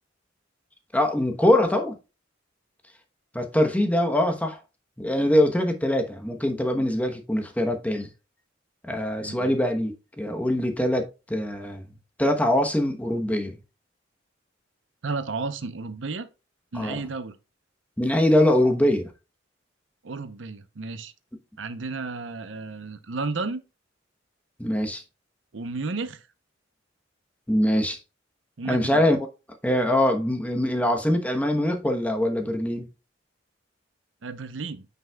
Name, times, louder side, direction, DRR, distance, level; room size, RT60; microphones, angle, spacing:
voice 1, 0.9-2.0 3.3-4.6 5.0-8.1 8.8-11.9 12.2-13.6 16.7-17.0 18.0-19.1 24.6-25.0 27.5-28.0 28.7-29.2 29.6-32.9, left 1 dB, 10° left, 1.0 m, -23 dB
voice 2, 9.2-9.5 15.0-16.3 16.7-17.4 20.0-21.1 21.6-23.6 25.5-26.3 28.6-29.0 34.2-34.9, right 3 dB, 70° right, 0.7 m, -33 dB
9.4 x 5.5 x 2.3 m
head